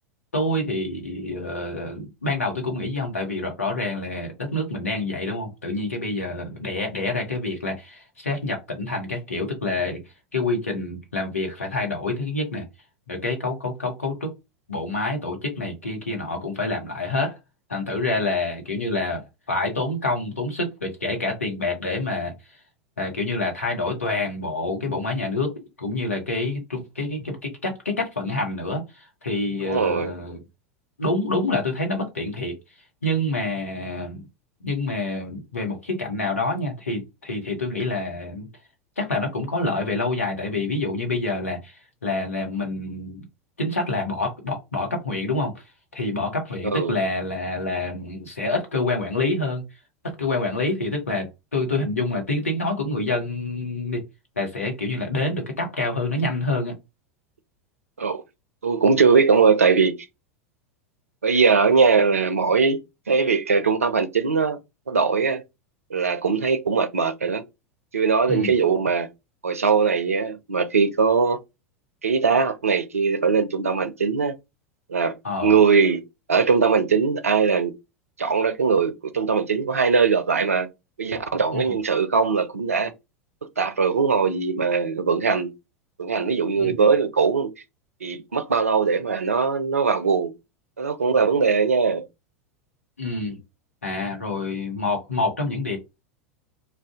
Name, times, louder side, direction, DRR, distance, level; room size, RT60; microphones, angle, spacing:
voice 1, 0.3-10.0 10.3-12.6 13.1-14.3 14.7-17.3 17.7-19.2 19.5-22.3 23.0-25.5 25.8-30.4 31.0-32.6 33.0-34.2 34.6-38.5 39.0-43.2 43.6-45.6 45.9-49.6 50.2-54.0 54.4-56.7 68.3-68.5 75.2-75.6 81.5-81.8 86.5-86.7 93.0-93.4 93.8-95.8, left 2 dB, 80° left, 1.0 m, -27 dB
voice 2, 29.6-30.1 46.6-47.0 58.0-58.2 58.6-60.0 61.2-62.8 63.1-64.6 64.9-65.4 65.9-67.4 67.9-69.1 69.4-71.4 72.0-74.3 74.9-75.2 75.4-76.0 76.3-77.7 78.2-80.7 81.0-82.9 83.4-85.5 86.0-87.5 88.0-90.3 90.8-92.1, right 5 dB, 80° right, 0.4 m, -20 dB
2.5 x 2.2 x 3.5 m
figure-of-eight pair, 85°, 8 cm